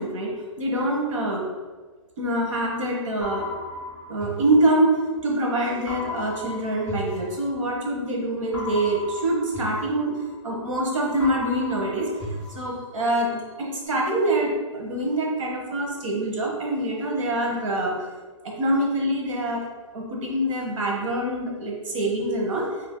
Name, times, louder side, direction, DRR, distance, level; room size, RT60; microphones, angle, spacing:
voice 1, 0.0-1.4 2.2-3.5 4.1-10.1 10.4-12.1 12.5-18.0 18.4-19.6 19.9-22.7, right 1 dB, 75° right, -1 dB, 1.0 m, -25 dB
sound 1, 3.2-5.3 5.9-7.9 8.5-10.8 11.2-13.3, left 2 dB, 5° left, 0.3 m, -36 dB
2.8 x 2.7 x 3.6 m, 1.4 s
hypercardioid pair, 175°, 16 cm